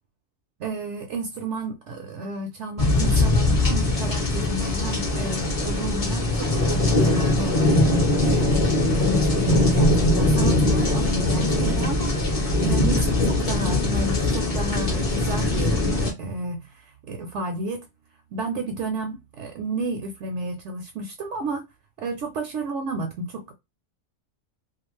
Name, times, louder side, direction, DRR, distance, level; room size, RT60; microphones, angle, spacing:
voice 1, 0.6-7.7 8.2-12.1 12.6-17.9 18.3-21.6 22.0-23.5, right 2 dB, 65° right, 0.8 m, -31 dB
sound 1, 2.8-16.1, left 2 dB, 35° left, 0.7 m, -21 dB
2.4 x 2.4 x 3.0 m
omnidirectional pair, 1.4 m